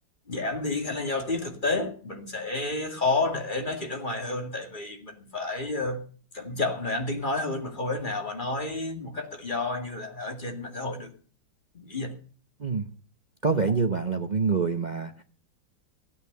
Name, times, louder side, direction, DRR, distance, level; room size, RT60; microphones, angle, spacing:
voice 1, 0.3-6.0 6.3-11.1 11.7-12.1, left 2 dB, 25° left, 2.5 m, -30 dB
voice 2, 13.4-15.2, right 4 dB, 45° right, 0.6 m, -26 dB
16.0 x 9.0 x 6.8 m
omnidirectional pair, 2.1 m